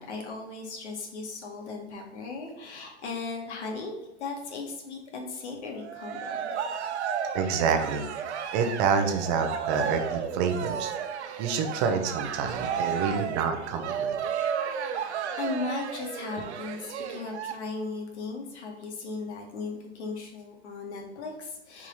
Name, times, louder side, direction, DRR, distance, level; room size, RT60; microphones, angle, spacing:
voice 1, 0.0-6.5 13.0-13.1 14.7-21.9, left 3 dB, 75° left, 1 dB, 2.0 m, -37 dB
Cheering, 5.8-17.5, right 7 dB, 70° right, 0.9 m, -33 dB
voice 2, 7.3-10.9 11.4-14.2, right 6 dB, 25° right, 6 dB, 0.7 m, -28 dB
4.8 x 4.6 x 5.5 m, 0.99 s
supercardioid pair, 165°, 34 cm